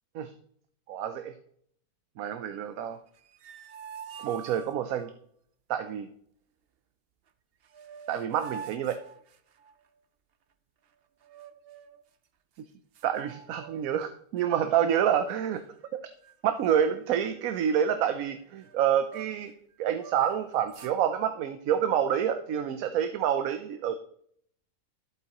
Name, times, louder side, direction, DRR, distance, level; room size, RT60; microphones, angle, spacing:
voice 1, 0.9-1.3 2.2-3.0 4.2-5.1 5.7-6.1 8.1-9.0 13.0-15.6 15.9-16.0 16.4-19.5 19.8-23.9, right 9 dB, 75° right, 9 dB, 1.0 m, -28 dB
sound 1, 3.1-5.1 7.3-7.4 7.6-9.9 11.2-12.0 12.6-12.7 12.9-14.1 14.4-14.7 15.3-15.9 16.2-16.4 16.6-19.5 19.9-21.0, right 7 dB, 55° right, 0.7 m, -47 dB
11.0 x 8.3 x 2.9 m, 0.64 s
omnidirectional pair, 1.6 m